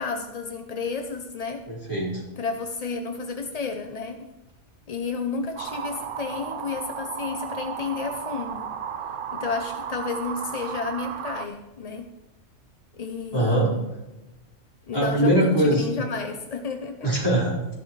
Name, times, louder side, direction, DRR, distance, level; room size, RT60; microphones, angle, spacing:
voice 1, 0.0-1.7 2.4-4.3 4.9-8.7 9.3-12.1 12.9-13.9 14.9-17.1, left 4 dB, 45° left, 6 dB, 0.5 m, -31 dB
voice 2, 1.7-2.2 13.3-13.7 14.9-15.9 17.0-17.7, right 1 dB, 15° left, -7 dB, 5.1 m, -22 dB
sound 1, 5.6-11.5, right 8 dB, 60° right, 0.5 m, -34 dB
13.5 x 11.5 x 3.3 m, 1.0 s
omnidirectional pair, 1.5 m